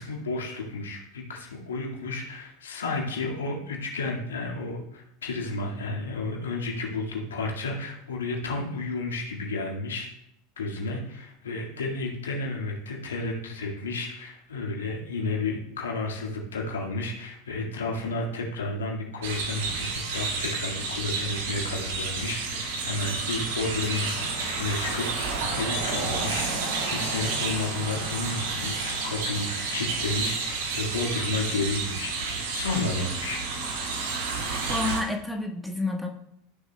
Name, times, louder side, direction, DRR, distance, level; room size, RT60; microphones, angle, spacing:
voice 1, 0.0-10.1 10.6-32.2 32.5-33.4, left 3 dB, 75° left, 0 dB, 1.8 m, -32 dB
sound 1, 19.2-35.0, right 4 dB, 65° right, 1.7 m, -30 dB
voice 2, 34.7-36.1, left 2 dB, ahead, 2 dB, 1.2 m, -29 dB
14.5 x 6.7 x 2.2 m, 0.76 s
figure-of-eight pair, 80°, 0 cm